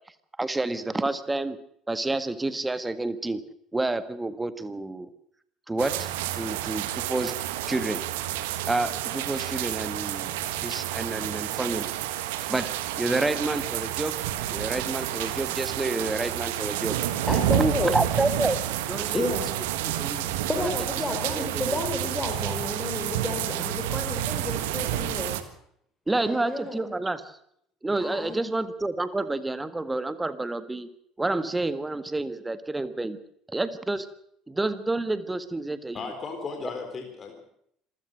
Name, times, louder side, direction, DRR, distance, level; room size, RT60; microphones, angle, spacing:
voice 1, 0.4-1.6 1.9-3.4 3.7-5.1 5.7-7.4 7.7-8.0 8.7-11.9 12.5-12.7 13.0-14.1 14.5-17.0 17.6-18.6 18.9-19.2 19.8-20.3 20.6-20.8 21.3-21.8 26.1-27.2 27.8-30.9 31.2-33.2 33.5-34.1 34.5-36.1, right 2 dB, 15° right, 12 dB, 1.7 m, -29 dB
sound 1, 5.8-25.4, right 12 dB, 65° right, 1.5 m, -30 dB
voice 2, 17.3-17.9 19.1-19.5 20.5-25.3 26.1-26.9 28.0-28.4, left 2 dB, 15° left, 3 dB, 4.4 m, -31 dB
voice 3, 35.9-37.4, left 4 dB, 35° left, 4 dB, 4.0 m, -36 dB
26.5 x 16.0 x 6.4 m, 0.71 s
figure-of-eight pair, 60°, 0 cm